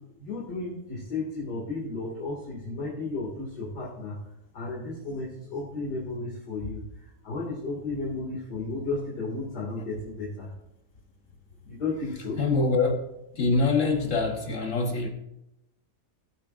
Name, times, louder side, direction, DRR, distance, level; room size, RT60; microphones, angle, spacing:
voice 1, 0.2-4.2 4.5-6.8 7.2-10.5 11.6-12.4, left 3 dB, 75° left, -5 dB, 2.9 m, -33 dB
voice 2, 12.4-13.0 13.3-15.1, left 3 dB, 55° left, 5 dB, 1.3 m, -24 dB
17.0 x 8.3 x 2.5 m, 0.86 s
omnidirectional pair, 1.8 m